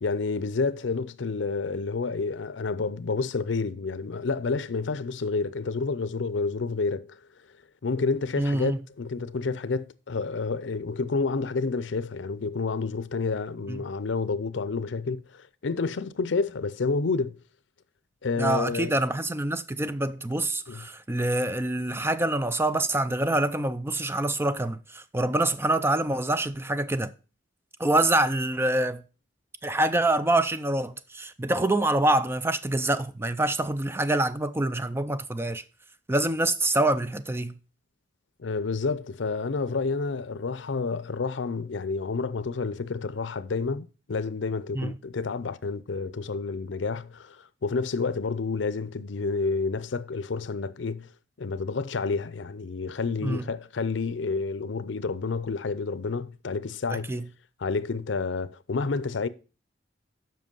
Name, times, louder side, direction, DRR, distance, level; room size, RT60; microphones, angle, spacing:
voice 1, 0.0-7.2 7.8-8.7 9.0-17.4 18.2-18.9 20.7-20.8 38.4-51.1 51.4-57.1 57.6-59.3, left 4 dB, 80° left, 0.6 m, -29 dB
voice 2, 8.4-8.8 13.7-13.9 18.4-27.1 27.8-29.0 29.6-35.6 36.1-37.5 44.7-45.0 53.2-53.4 56.9-57.3, right 1 dB, 15° right, 0.5 m, -26 dB
7.6 x 5.7 x 5.4 m
head